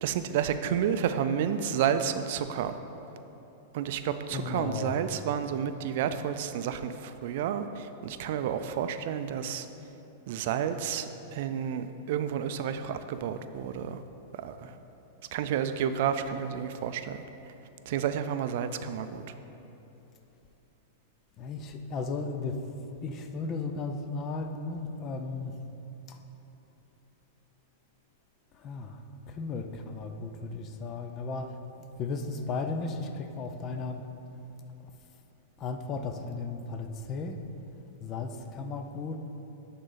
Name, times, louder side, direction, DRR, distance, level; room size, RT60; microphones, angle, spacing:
voice 1, 0.0-2.7 3.7-9.7 10.3-14.0 14.4-14.7 15.3-17.2 17.9-19.2, right 8 dB, 60° right, 10 dB, 0.4 m, -30 dB
voice 2, 4.3-4.9 21.4-22.6 23.0-25.5 28.6-29.0 29.4-31.5 32.0-34.0 35.6-37.4 38.0-39.2, left 4 dB, 35° left, 7 dB, 0.5 m, -35 dB
11.5 x 4.0 x 4.0 m, 3.0 s
hypercardioid pair, 130°, 0 cm